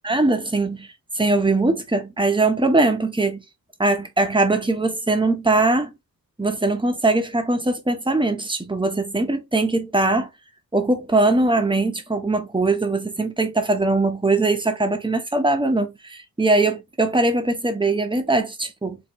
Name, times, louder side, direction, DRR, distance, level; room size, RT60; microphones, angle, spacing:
voice 1, 0.0-0.9 1.1-3.4 3.8-5.9 6.4-10.3 10.7-19.0, right 2 dB, 15° right, 0.9 m, -21 dB
4.5 x 2.9 x 3.0 m
wide cardioid pair, 95°, 38 cm